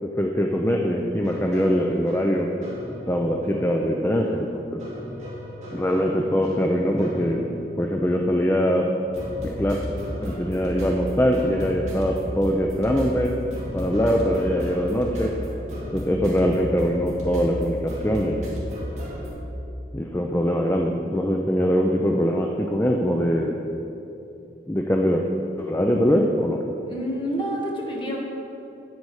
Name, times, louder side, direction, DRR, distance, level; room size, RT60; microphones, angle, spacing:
voice 1, 0.0-2.5 3.1-4.8 5.7-7.5 7.8-8.9 9.6-9.8 10.2-13.3 13.7-15.3 15.9-18.4 19.9-23.6 24.7-25.2 25.6-26.6, equal, 15° left, 1 dB, 0.5 m, -22 dB
sound 1, 1.0-19.3, equal, 40° right, 2.6 m, -34 dB
voice 2, 26.9-28.2, equal, 30° left, -2 dB, 1.6 m, -28 dB
9.6 x 9.1 x 4.8 m, 2.8 s
head